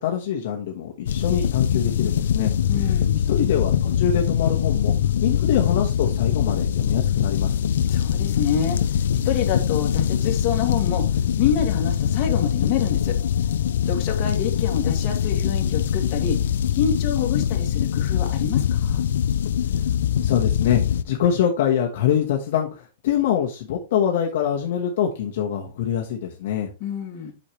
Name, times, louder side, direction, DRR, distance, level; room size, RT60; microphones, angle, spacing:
voice 1, 0.0-2.5 2.8-3.0 3.3-4.9 5.2-7.6 20.2-26.7, left 9 dB, 55° left, 0 dB, 1.3 m, -24 dB
sound 1, 1.1-21.0, left 9 dB, 80° left, 0.6 m, -22 dB
voice 2, 2.7-3.2 7.9-11.1 11.4-13.2 13.9-16.4 16.7-19.0 26.8-27.3, left 8 dB, 35° left, 1 dB, 2.2 m, -27 dB
8.7 x 6.6 x 3.2 m, 0.30 s
supercardioid pair, 165°, 0 cm